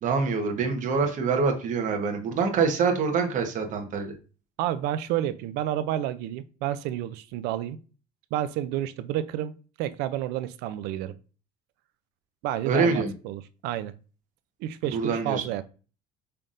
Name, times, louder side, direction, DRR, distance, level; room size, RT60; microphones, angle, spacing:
voice 1, 0.0-4.1 12.6-13.1 14.9-15.4, right 5 dB, 50° right, 1.1 m, -25 dB
voice 2, 4.6-7.8 8.3-11.1 12.4-13.9 14.6-15.6, right 12 dB, 85° right, 0.4 m, -30 dB
5.6 x 3.4 x 2.5 m
cardioid pair, 120°, 16 cm